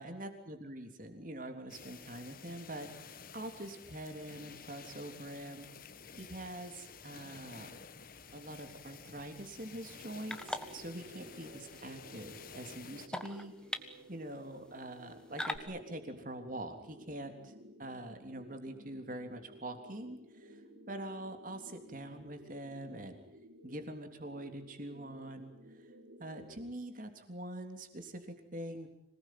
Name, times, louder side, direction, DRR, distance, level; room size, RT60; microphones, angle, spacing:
voice 1, 0.0-5.7 6.2-7.7 8.3-13.5 14.1-17.5 17.8-20.6 20.9-23.2 23.6-25.5 26.2-28.9, right 1 dB, 45° right, 6 dB, 3.5 m, -44 dB
sound 1, 1.7-13.1, left 6 dB, 50° left, 1.3 m, -52 dB
sound 2, 8.1-15.6, left 1 dB, 5° left, 1.5 m, -46 dB
sound 3, 10.3-26.7, equal, 85° right, 3.0 m, -56 dB
26.0 x 19.0 x 9.4 m, 0.77 s
head